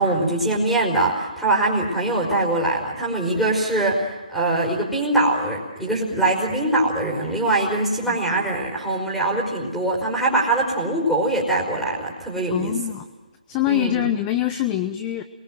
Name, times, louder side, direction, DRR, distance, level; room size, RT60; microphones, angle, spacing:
voice 1, 0.0-12.7 13.7-14.1, right 2 dB, ahead, -2 dB, 4.9 m, -22 dB
voice 2, 12.5-13.1 13.5-15.2, left 13 dB, 15° left, 9 dB, 0.9 m, -24 dB
27.5 x 23.0 x 7.8 m, 1.2 s
hypercardioid pair, 165°, 4 cm